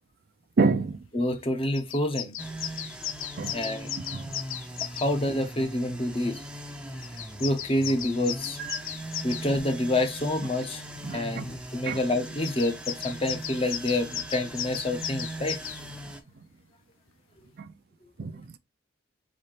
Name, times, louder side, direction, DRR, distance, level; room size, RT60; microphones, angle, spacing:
voice 1, 0.6-1.0 3.4-3.5 4.1-4.3 8.6-8.8 11.0-11.5 11.9-12.0 17.6-17.7 18.2-18.6, right 4 dB, 50° right, 0.4 m, -28 dB
voice 2, 1.1-2.4 3.5-3.9 4.8-6.4 7.4-8.6 9.2-10.8 11.1-15.6, left 1 dB, 30° left, 0.8 m, -28 dB
sound 1, 1.3-1.4 1.7-5.1 7.0-9.5 12.4-15.8, left 10 dB, 85° left, 0.7 m, -36 dB
sound 2, 2.4-16.2, right 1 dB, 5° right, 0.6 m, -40 dB
4.2 x 3.9 x 3.2 m
head